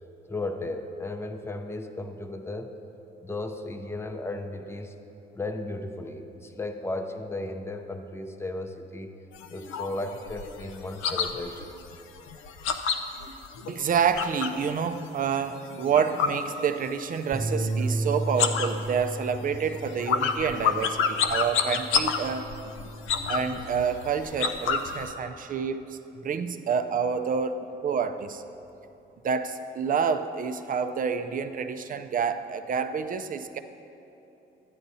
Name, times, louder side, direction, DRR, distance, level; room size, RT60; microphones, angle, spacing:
voice 1, 0.3-2.7 3.2-4.9 5.4-9.1 9.5-11.7, left 2 dB, 10° left, 6 dB, 0.6 m, -35 dB
sound 1, 9.3-14.7 15.0-17.1 17.4-18.0 18.3-25.1, left 6 dB, 90° left, 0.6 m, -29 dB
voice 2, 13.7-22.5 23.3-28.4 29.2-33.6, right 6 dB, 45° right, 9 dB, 0.5 m, -28 dB
Bass guitar, 17.3-23.6, right 1 dB, 5° right, 1.2 m, -34 dB
13.0 x 9.8 x 2.7 m, 2.9 s
cardioid pair, 90°, 20 cm